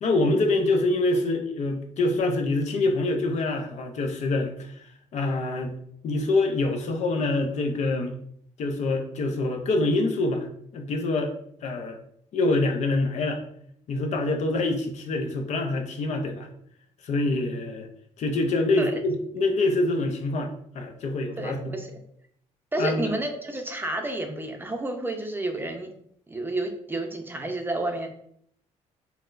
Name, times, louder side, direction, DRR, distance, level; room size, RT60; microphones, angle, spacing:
voice 1, 0.0-4.8 5.1-5.8 6.0-8.1 8.6-10.5 10.7-11.3 11.6-12.0 12.3-13.4 13.9-16.5 17.0-17.9 18.2-21.7 22.8-23.0, left 2 dB, 60° left, 4 dB, 0.5 m, -25 dB
voice 2, 21.4-22.0 22.7-25.9 26.3-28.1, right 2 dB, 15° right, 4 dB, 0.5 m, -30 dB
4.1 x 2.0 x 2.5 m, 0.67 s
cardioid pair, 90°, 13 cm